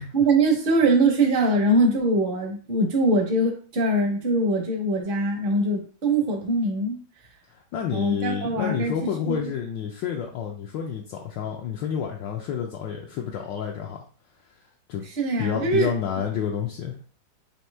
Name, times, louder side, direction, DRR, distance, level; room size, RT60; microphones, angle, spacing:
voice 1, 0.1-7.0 7.9-8.9 9.3-9.5 15.2-15.9, right 2 dB, 50° right, 1 dB, 0.7 m, -22 dB
voice 2, 7.5-14.0 14.9-15.0 15.4-16.9, left 8 dB, 75° left, 1 dB, 1.2 m, -29 dB
4.4 x 2.7 x 3.3 m, 0.41 s
omnidirectional pair, 2.2 m